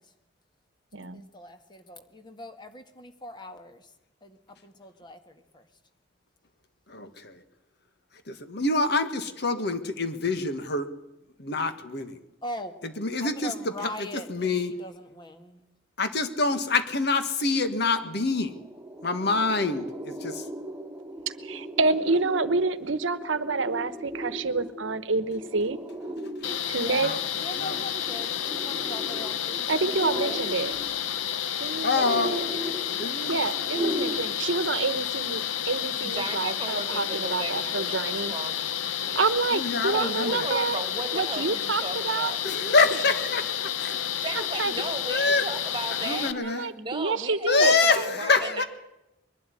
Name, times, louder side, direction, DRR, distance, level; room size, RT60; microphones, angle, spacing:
voice 1, 1.1-3.9 4.2-5.7 12.4-12.8 13.2-15.6 26.8-30.4 33.4-33.5 33.9-34.7, left 1 dB, 25° left, 7 dB, 1.6 m, -41 dB
voice 2, 6.9-7.4 8.3-10.9 11.4-12.2 13.0-13.5 14.0-14.7 16.0-18.6 19.0-20.4 26.4-26.5 27.0-27.2 27.6-27.8 31.8-32.3 33.0-33.4 39.5-40.5 42.4-44.0 45.1-45.4 45.9-46.7 47.5-48.6, left 3 dB, 55° left, 9 dB, 1.7 m, -26 dB
sound 1, 18.0-34.2, equal, 5° right, 2.3 m, -37 dB
voice 3, 21.4-25.8 26.7-27.1 29.7-30.7 31.6-32.4 33.3-38.3 39.1-40.8 41.1-42.3 44.3-44.7 46.3-47.8, right 3 dB, 75° right, 14 dB, 1.1 m, -28 dB
sound 2, 26.4-46.3, left 9 dB, 80° left, 0.9 m, -31 dB
voice 4, 36.0-38.7 39.0-39.2 39.9-42.4 44.2-48.6, right 3 dB, 25° right, 8 dB, 2.1 m, -36 dB
22.0 x 12.0 x 9.9 m, 0.91 s
head